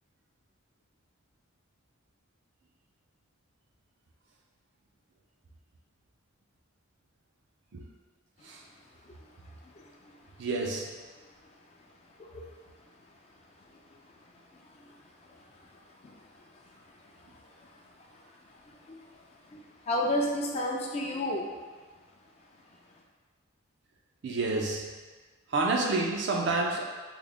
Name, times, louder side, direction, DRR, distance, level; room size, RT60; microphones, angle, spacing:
voice 1, 9.0-10.2 12.2-12.5 13.6-21.5, left 1 dB, 30° left, -1 dB, 0.3 m, -36 dB
voice 2, 10.4-10.9 24.2-24.9 25.5-26.9, right 3 dB, 55° right, 0 dB, 0.4 m, -29 dB
3.4 x 2.0 x 3.5 m, 1.4 s
head